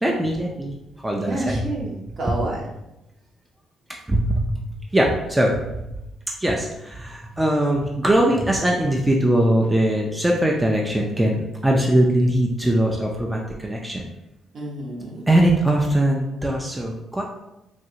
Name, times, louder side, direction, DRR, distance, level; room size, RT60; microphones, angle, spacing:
voice 1, 0.0-0.7 1.0-1.6 4.1-4.6 4.9-5.8 6.4-14.1 15.3-17.2, right 1 dB, 10° right, -1 dB, 0.4 m, -21 dB
voice 2, 1.2-2.6 14.5-15.2, right 2 dB, 55° right, -3 dB, 1.0 m, -29 dB
3.1 x 2.5 x 2.8 m, 0.91 s
cardioid pair, 90°, 0 cm